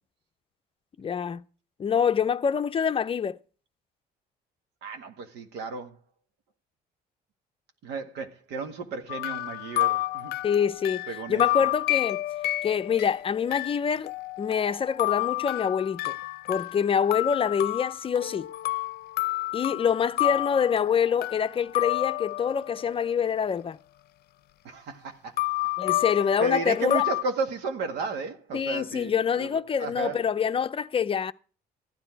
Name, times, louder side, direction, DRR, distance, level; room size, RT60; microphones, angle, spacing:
voice 1, 1.0-1.4 1.8-3.4 10.4-12.2 12.6-14.1 14.4-16.2 16.5-18.5 19.5-23.8 25.8-27.0 28.5-31.3, left 7 dB, 35° left, 0.6 m, -26 dB
voice 2, 4.8-6.0 7.8-10.3 11.1-11.7 24.6-25.4 26.4-30.2, right 4 dB, 85° right, 1.9 m, -33 dB
sound 1, 9.1-22.9 25.4-27.2, left 18 dB, 70° left, 0.6 m, -30 dB
14.5 x 10.0 x 4.6 m
cardioid pair, 110°, 17 cm